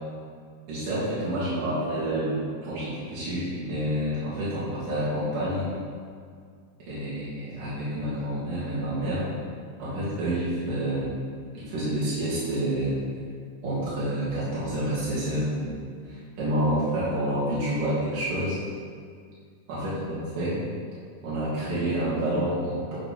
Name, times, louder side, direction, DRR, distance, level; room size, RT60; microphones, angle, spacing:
voice 1, 0.7-5.7 6.9-9.3 9.8-11.1 11.5-13.0 13.6-15.7 16.1-18.6 19.7-20.6 21.2-23.0, right 1 dB, 80° right, -11 dB, 4.3 m, -28 dB
12.5 x 4.9 x 5.6 m, 2.1 s
omnidirectional pair, 3.6 m